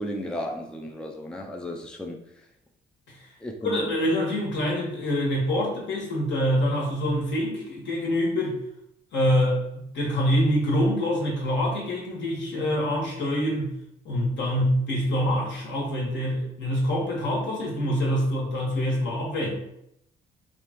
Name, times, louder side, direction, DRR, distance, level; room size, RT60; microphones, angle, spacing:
voice 1, 0.0-2.2 3.4-3.9, equal, 5° left, 1 dB, 0.5 m, -34 dB
voice 2, 3.6-8.6 9.1-13.7 14.0-19.5, equal, 65° left, -2 dB, 1.4 m, -25 dB
3.4 x 2.4 x 4.4 m, 0.78 s
cardioid pair, 90°, 20 cm